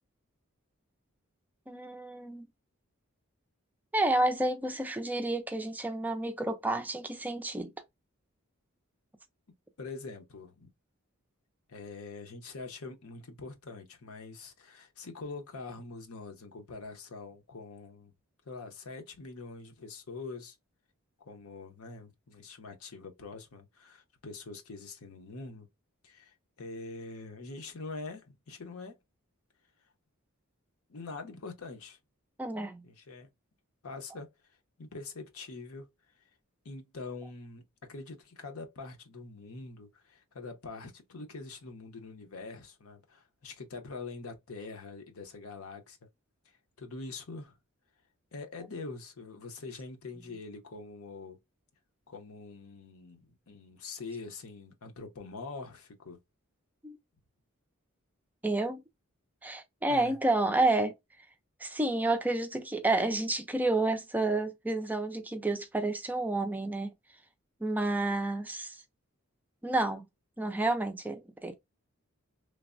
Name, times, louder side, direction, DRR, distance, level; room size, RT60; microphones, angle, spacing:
voice 1, 1.7-2.4 3.9-7.7 32.4-32.8 56.8-57.0 58.4-58.8 59.4-60.9 61.6-66.9 67.6-68.8 69.6-70.0 70.4-71.5, right 2 dB, 10° right, 0.3 m, -30 dB
voice 2, 9.8-10.7 11.7-18.1 18.5-20.6 21.2-25.7 26.0-29.0 30.9-32.0 32.8-33.3 33.8-34.3 34.8-35.9 36.6-46.0 46.8-47.6 48.3-51.4 52.1-56.2 59.9-60.2, left 3 dB, 75° left, 0.7 m, -44 dB
3.2 x 2.0 x 2.4 m
head